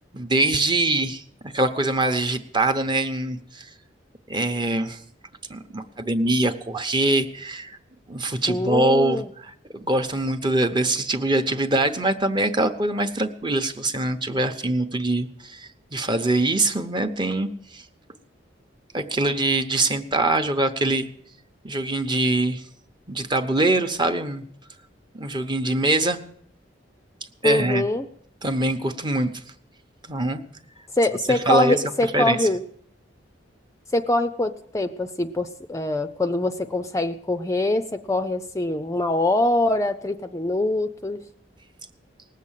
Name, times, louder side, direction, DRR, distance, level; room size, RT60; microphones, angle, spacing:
voice 1, 0.1-3.7 4.3-5.0 5.5-7.8 8.1-9.5 9.8-17.8 18.9-21.1 21.6-22.6 23.1-24.4 25.1-26.2 27.4-27.9 28.4-29.3 30.1-30.4 31.3-31.8 32.1-32.5, right 2 dB, 25° right, 7 dB, 0.9 m, -23 dB
voice 2, 8.5-9.3 27.4-28.1 31.0-32.6 33.9-41.2, left 1 dB, 15° left, 8 dB, 0.5 m, -24 dB
19.0 x 7.6 x 7.4 m, 0.67 s
head